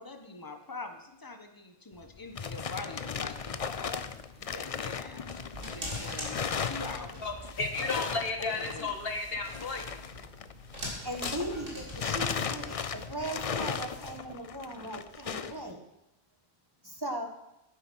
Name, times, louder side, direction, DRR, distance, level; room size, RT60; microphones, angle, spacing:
voice 1, 0.0-4.1 4.4-7.3 7.8-8.0 8.4-8.9, left 3 dB, 20° left, 5 dB, 1.2 m, -43 dB
sound 1, 2.0-11.6 11.9-15.6, left 6 dB, 45° left, 0.5 m, -37 dB
sound 2, 3.3-13.2, equal, 60° right, 3.1 m, -45 dB
voice 2, 7.2-9.8, left 3 dB, 65° left, 4 dB, 1.8 m, -33 dB
voice 3, 11.0-15.8 16.8-17.3, right 1 dB, 20° right, 3 dB, 1.4 m, -38 dB
11.5 x 9.9 x 6.3 m, 0.87 s
omnidirectional pair, 1.1 m